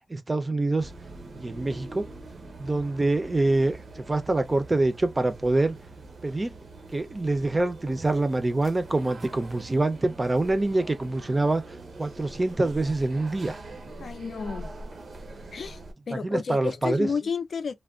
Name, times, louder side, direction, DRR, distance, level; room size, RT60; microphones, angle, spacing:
voice 1, 0.1-0.9 1.4-2.1 2.6-5.8 6.2-6.5 6.9-11.6 12.0-13.6 16.1-17.1, right 2 dB, 25° right, 0.5 m, -25 dB
sound 1, 0.8-15.9, right 2 dB, 75° right, 0.9 m, -43 dB
voice 2, 14.0-14.7 15.5-15.8 16.1-17.7, left 5 dB, 70° left, 0.4 m, -31 dB
3.3 x 2.2 x 2.4 m
wide cardioid pair, 115°, 0 cm